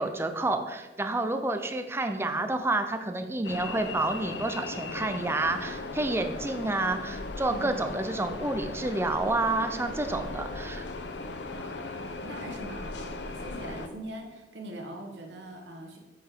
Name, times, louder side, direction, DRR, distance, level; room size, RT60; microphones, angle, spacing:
voice 1, 0.0-10.9, right 2 dB, 15° right, 7 dB, 0.5 m, -29 dB
sound 1, 3.4-13.9, left 3 dB, 70° left, 0.7 m, -38 dB
voice 2, 7.5-7.8 11.5-16.0, right 1 dB, 80° right, 2 dB, 1.3 m, -42 dB
8.7 x 5.3 x 3.7 m, 1.1 s
head